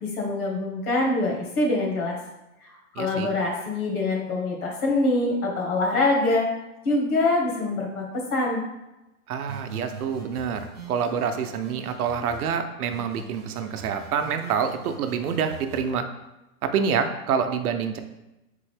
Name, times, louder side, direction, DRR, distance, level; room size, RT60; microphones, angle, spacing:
voice 1, 0.0-2.2 2.6-6.4 6.8-8.6, left 2 dB, 75° left, 0 dB, 1.4 m, -24 dB
voice 2, 3.0-3.3 9.3-16.1 16.6-18.0, right 7 dB, 80° right, 7 dB, 0.6 m, -27 dB
sound 1, 9.5-12.5 12.9-15.9, right 3 dB, 30° right, 0.4 m, -43 dB
3.7 x 3.5 x 3.3 m, 0.96 s
hypercardioid pair, 170°, 44 cm